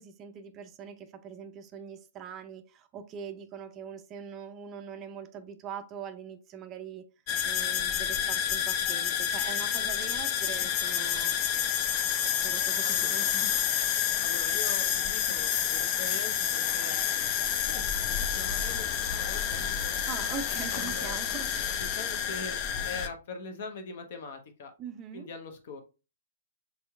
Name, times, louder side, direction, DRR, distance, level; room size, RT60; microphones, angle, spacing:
voice 1, 0.0-7.1 7.4-11.3 12.4-13.6 17.6-17.7 20.1-21.6 24.8-25.3, right 7 dB, 25° right, 0.4 m, -42 dB
sound 1, 7.3-23.1, left 9 dB, 35° left, 0.4 m, -29 dB
voice 2, 12.8-13.3 14.2-20.0 20.7-21.2 21.8-24.7 25.1-25.8, left 3 dB, 50° left, 0.8 m, -43 dB
4.2 x 3.4 x 2.3 m
figure-of-eight pair, 115°, 0 cm